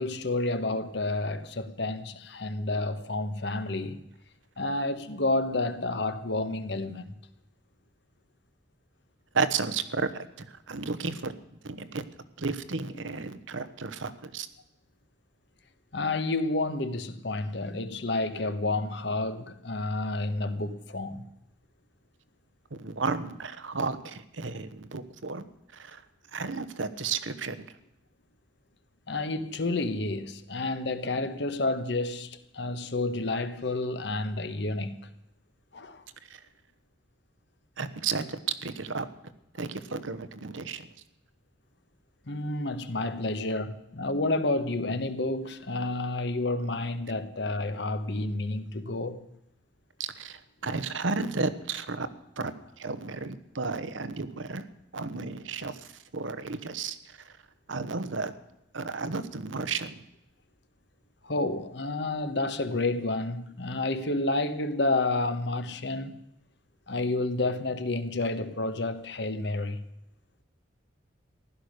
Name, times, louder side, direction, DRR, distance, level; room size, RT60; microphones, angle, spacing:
voice 1, 0.0-4.0 4.6-7.1 12.9-13.1 15.9-21.3 29.1-35.1 35.7-36.0 42.3-49.2 61.2-66.2 66.9-69.8, left 2 dB, 60° left, 1.2 m, -30 dB
voice 2, 9.3-10.0 10.4-11.3 11.7-12.0 12.4-14.5 22.7-25.4 25.7-26.0 26.3-27.7 36.3-36.4 37.8-39.1 39.6-40.8 50.2-52.1 52.4-54.6 54.9-55.8 56.1-57.0 57.2-57.3 57.7-58.3 58.7-59.9, right 4 dB, 85° right, 1.1 m, -33 dB
15.5 x 12.0 x 6.6 m
head